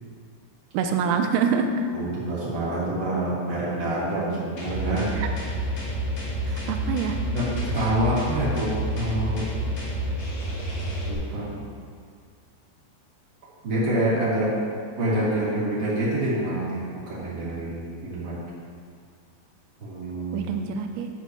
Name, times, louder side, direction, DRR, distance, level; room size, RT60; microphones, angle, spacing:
voice 1, 0.7-1.7 5.2-5.3 6.5-7.2 20.3-21.1, right 7 dB, 90° right, 5 dB, 2.9 m, -25 dB
voice 2, 1.9-5.1 6.5-6.6 7.3-9.5 11.1-11.6 13.6-14.6 15.0-18.4 19.8-20.5, right 1 dB, 40° right, -8 dB, 3.0 m, -27 dB
sound 1, 4.6-11.1, right 1 dB, 50° left, 3.1 m, -29 dB
12.5 x 8.9 x 3.1 m, 2.1 s
omnidirectional pair, 5.2 m